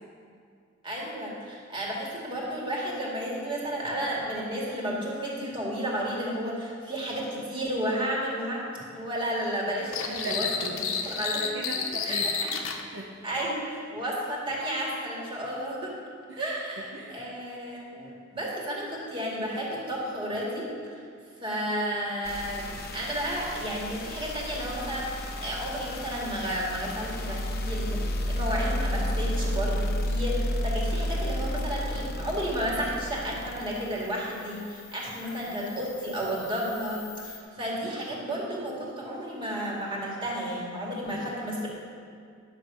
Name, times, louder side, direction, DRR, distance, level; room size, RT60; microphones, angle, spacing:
voice 1, 0.8-8.7 8.9-10.5 10.8-11.4 12.0-12.5 13.2-16.0 16.4-20.7 21.4-41.7, equal, 25° right, -4 dB, 2.2 m, -32 dB
sound 1, 9.9-12.8, left 6 dB, 90° left, 0.9 m, -30 dB
voice 2, 10.1-12.3 12.9-13.4 16.3-16.4 16.8-17.2 35.5-35.8 41.0-41.3, right 2 dB, 65° right, -1 dB, 0.9 m, -39 dB
sound 2, 22.2-37.4, left 1 dB, 50° left, 0.9 m, -33 dB
10.5 x 6.5 x 6.3 m, 2.2 s
head